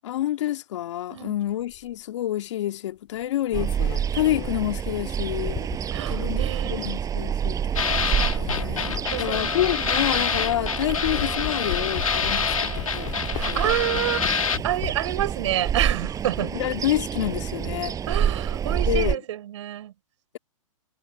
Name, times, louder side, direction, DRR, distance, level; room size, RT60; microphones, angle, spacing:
voice 1, 0.0-5.6 6.1-13.7 16.4-18.0 18.9-19.2, left 13 dB, 60° left, 2.2 m, -28 dB
sound 1, 1.7-1.9 3.2-6.0 6.7-6.9 8.0-10.6 10.9-15.2 15.6-16.4, left 34 dB, 40° left, 2.2 m, -37 dB
Ocean, 3.5-19.1, right 8 dB, 20° right, 5.5 m, -28 dB
voice 2, 5.9-7.1 9.1-9.6 13.3-14.3 14.6-16.5 18.1-19.9, right 12 dB, 60° right, 4.3 m, -28 dB
sound 2, 7.8-14.6, left 6 dB, 85° left, 2.7 m, -27 dB
hypercardioid pair, 120°, 17 cm